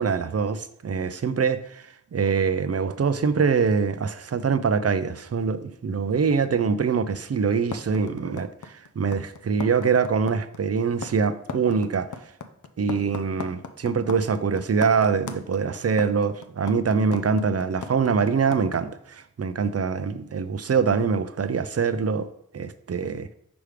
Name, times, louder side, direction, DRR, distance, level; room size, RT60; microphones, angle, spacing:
voice 1, 0.0-1.8 2.1-12.1 12.8-22.3 22.5-23.3, right 5 dB, 50° right, 0.5 m, -24 dB
sound 1, 7.7-18.8, left 5 dB, 70° left, 0.6 m, -36 dB
6.0 x 3.3 x 4.9 m
wide cardioid pair, 60°, 31 cm